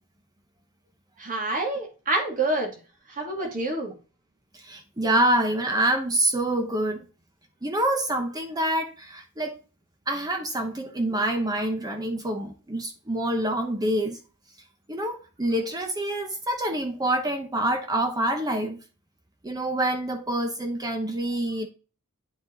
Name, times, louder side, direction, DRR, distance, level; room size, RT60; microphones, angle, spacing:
voice 1, 1.2-2.7 3.1-3.9, right 2 dB, 40° right, 2.5 m, -27 dB
voice 2, 4.5-7.0 7.6-9.6 10.1-14.2 14.9-18.8 19.4-21.7, right 1 dB, 20° right, 0.9 m, -26 dB
9.7 x 5.1 x 3.9 m
head